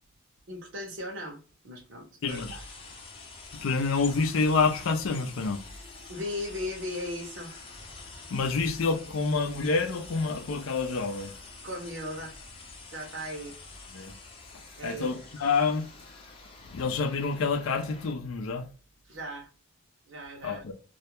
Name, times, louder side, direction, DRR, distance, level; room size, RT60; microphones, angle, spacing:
voice 1, 0.5-1.4 1.6-2.6 6.1-7.5 11.6-12.3 12.9-13.6 14.8-15.1 19.1-19.5 20.1-20.6, left 1 dB, 60° right, 0.7 m, -37 dB
voice 2, 2.2-2.6 3.6-5.6 8.3-11.3 13.9-14.1 14.8-15.9 16.7-18.6 20.4-20.7, left 4 dB, 80° left, 0.4 m, -27 dB
sound 1, 2.3-18.1, left 3 dB, 25° left, 0.6 m, -47 dB
2.3 x 2.1 x 2.8 m
head